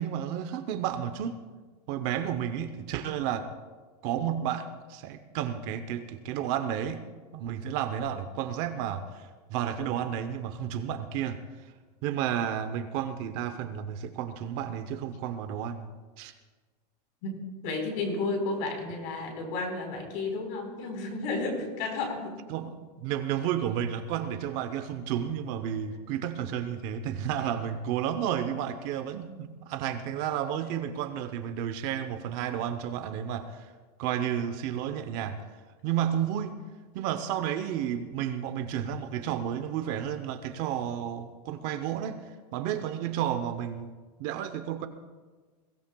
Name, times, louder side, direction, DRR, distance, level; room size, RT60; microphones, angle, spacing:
voice 1, 0.0-1.4 1.9-3.5 4.0-7.0 7.3-11.7 12.0-15.9 16.2-16.3 22.5-33.7 34.0-35.4 35.8-36.6 36.9-42.2 42.5-43.9 44.2-44.9, right 9 dB, 40° right, 9 dB, 0.8 m, -32 dB
voice 2, 17.2-22.4, left 3 dB, 50° left, 2 dB, 4.2 m, -32 dB
22.0 x 16.5 x 2.3 m, 1.4 s
supercardioid pair, 170°, 20 cm